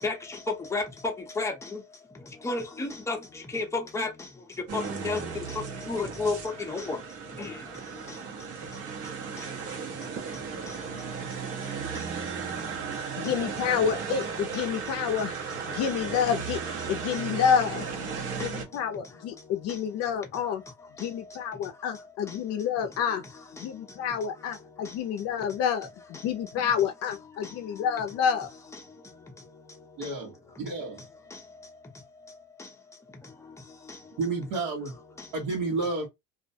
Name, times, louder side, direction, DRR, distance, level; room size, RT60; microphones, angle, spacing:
voice 1, 0.0-13.4 14.5-16.2 16.8-17.3 17.8-26.5 27.2-34.2 34.9-35.4, left 3 dB, 10° left, 0.6 m, -38 dB
sound 1, 4.7-18.6, right 5 dB, 55° right, 0.9 m, -35 dB
voice 2, 13.2-15.4 15.7-16.6 16.9-17.9 18.4-20.6 21.0-23.2 23.6-28.5, left 7 dB, 55° left, 0.4 m, -28 dB
voice 3, 30.0-31.0 34.2-35.0 35.3-36.1, right 3 dB, 75° right, 1.0 m, -31 dB
2.3 x 2.1 x 2.6 m
cardioid pair, 145°, 30 cm